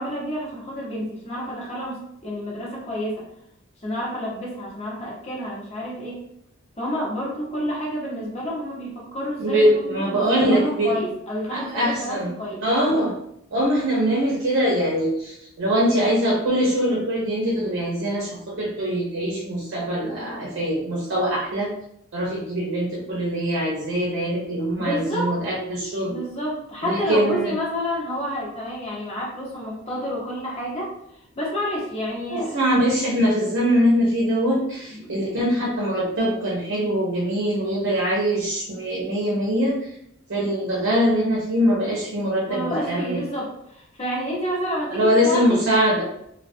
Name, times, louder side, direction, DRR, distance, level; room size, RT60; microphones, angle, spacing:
voice 1, 0.0-2.0 2.2-3.2 3.8-6.2 6.8-12.6 24.8-25.3 26.1-30.9 31.3-32.6 34.9-35.1 42.5-45.6, equal, 30° left, -5 dB, 0.8 m, -29 dB
voice 2, 9.4-10.9 11.5-12.3 12.6-13.1 13.5-21.7 22.1-26.2 26.8-27.5 32.3-39.8 40.3-43.2 44.9-46.0, equal, 60° right, -5 dB, 0.6 m, -22 dB
2.3 x 2.2 x 2.5 m, 0.75 s
head